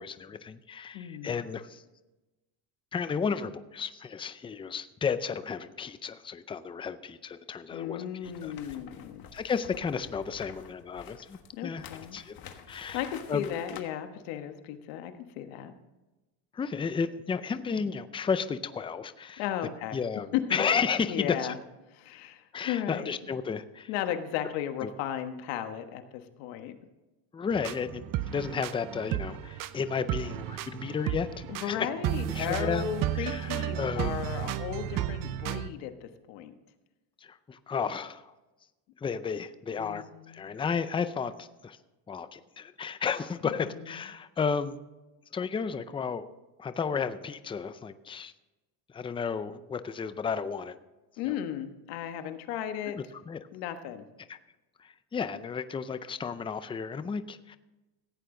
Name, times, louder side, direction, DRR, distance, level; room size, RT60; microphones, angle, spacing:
voice 1, 0.0-1.8 2.9-8.5 9.3-11.8 12.1-12.4 12.7-13.5 16.5-19.4 19.9-21.5 22.5-23.9 24.8-24.9 27.3-31.3 31.6-31.9 32.2-32.9 33.1-34.2 37.2-38.3 39.0-41.8 42.1-44.8 45.3-46.3 46.6-48.3 48.9-50.8 51.3-51.4 52.9-53.4 54.3-54.4 54.8-57.6, left 6 dB, 10° left, 12 dB, 0.4 m, -33 dB
voice 2, 0.9-1.4 7.7-9.3 11.5-12.2 12.9-15.7 19.4-20.0 20.3-20.6 21.1-21.6 21.9-23.1 23.9-26.8 31.5-36.5 39.8-40.5 43.4-44.1 51.2-53.0 53.5-54.0, left 10 dB, 85° left, 7 dB, 1.4 m, -35 dB
sound 1, 8.2-13.8, left 8 dB, 50° left, 1.5 m, -49 dB
sound 2, 27.5-35.7, right 12 dB, 45° right, 0.7 m, -33 dB
15.5 x 9.0 x 3.8 m, 1.1 s
cardioid pair, 125°, 46 cm